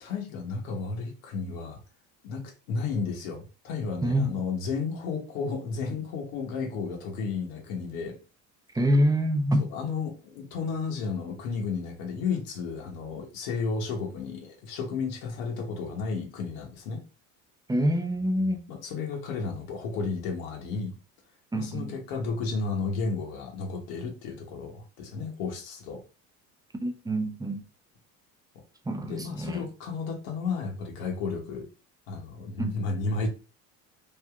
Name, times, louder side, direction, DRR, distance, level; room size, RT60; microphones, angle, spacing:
voice 1, 0.0-1.8 2.2-2.4 2.7-8.2 9.6-17.0 18.7-21.0 21.5-26.0 29.1-31.7 32.1-33.3, left 4 dB, 75° left, 1.0 m, -33 dB
voice 2, 4.0-4.3 8.7-9.6 17.7-18.6 21.5-21.9 26.8-27.6 28.9-29.6 32.6-32.8, equal, 10° right, 0.6 m, -26 dB
3.3 x 2.7 x 2.3 m
hypercardioid pair, 70°, 41 cm